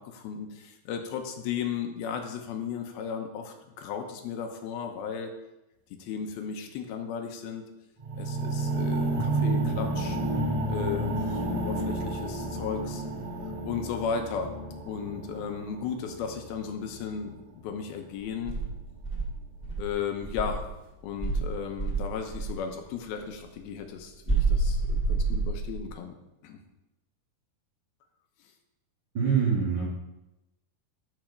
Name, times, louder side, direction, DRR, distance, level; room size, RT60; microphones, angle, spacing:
voice 1, 0.0-5.3 6.0-7.7 8.2-10.2 10.7-13.0 13.6-14.5 14.9-17.3 17.6-18.6 19.8-20.6 21.0-26.2 26.4-26.6, left 7 dB, 80° left, 5 dB, 2.7 m, -35 dB
sound 1, 8.0-18.1 18.8-18.9, right 2 dB, 50° right, 2.6 m, -31 dB
Insect, 18.4-20.7 21.2-22.6 24.3-25.9, right 3 dB, 25° right, 0.9 m, -28 dB
voice 2, 29.1-29.9, right 6 dB, 75° right, -5 dB, 0.9 m, -25 dB
12.5 x 4.3 x 5.2 m, 0.94 s
omnidirectional pair, 4.4 m